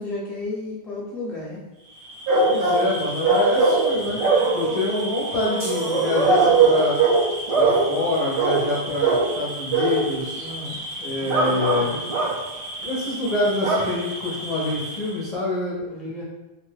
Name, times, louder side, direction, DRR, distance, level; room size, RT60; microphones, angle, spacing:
voice 1, 0.0-1.6 10.4-10.8 15.8-16.2, left 2 dB, ahead, -6 dB, 0.7 m, -32 dB
Bark / Cricket, 2.0-15.3, right 3 dB, 45° right, 0.5 m, -27 dB
voice 2, 2.3-7.0 7.5-10.4 11.0-12.0 12.8-15.8, left 2 dB, 45° left, -7 dB, 0.6 m, -26 dB
sound 1, 2.3-2.9 3.2-4.0 6.2-7.3 7.6-7.9 8.4-8.7 9.0-9.3 9.7-10.0 10.4-10.5 10.7-10.8, right 4 dB, 80° right, 1.3 m, -19 dB
sound 2, 5.6-7.0, right 2 dB, 60° right, 1.0 m, -36 dB
2.8 x 2.1 x 3.3 m, 1.0 s
omnidirectional pair, 1.1 m